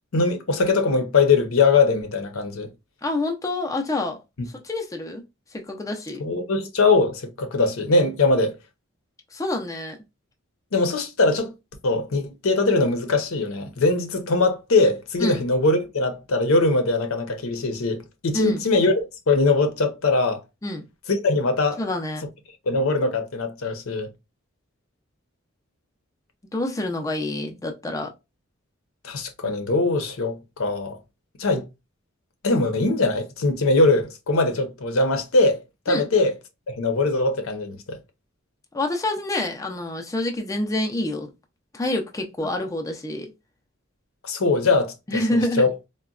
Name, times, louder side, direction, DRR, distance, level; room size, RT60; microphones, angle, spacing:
voice 1, 0.1-2.7 4.4-4.5 6.2-8.5 10.7-11.5 11.8-18.0 18.2-20.4 21.1-21.8 22.7-24.1 29.0-31.0 31.4-31.6 32.4-36.3 36.7-38.0 44.2-45.7, left 3 dB, 85° left, 0.7 m, -21 dB
voice 2, 3.0-4.2 4.6-5.2 5.5-6.2 9.3-10.0 15.2-15.4 18.3-18.6 20.6-20.8 21.8-22.2 26.5-28.1 35.9-36.1 38.7-41.3 41.7-43.3 45.1-45.6, left 1 dB, 15° left, 0.4 m, -27 dB
3.9 x 2.1 x 2.3 m
head